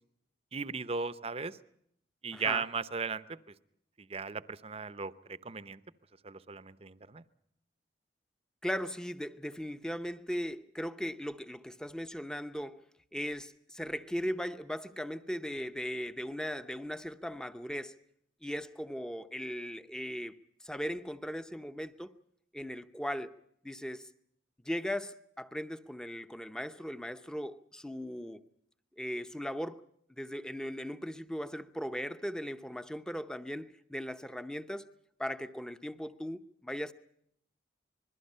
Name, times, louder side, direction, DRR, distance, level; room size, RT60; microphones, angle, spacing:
voice 1, 0.5-1.6 2.2-3.4 4.0-5.8 6.2-7.2, right 5 dB, 35° right, 0.8 m, -37 dB
voice 2, 2.3-2.6 8.6-12.8 13.1-18.0 18.4-22.1 22.5-23.3 23.6-24.1 24.6-28.4 29.0-29.8 30.2-34.8 35.2-36.9, equal, 5° left, 0.8 m, -38 dB
27.5 x 21.5 x 5.6 m
head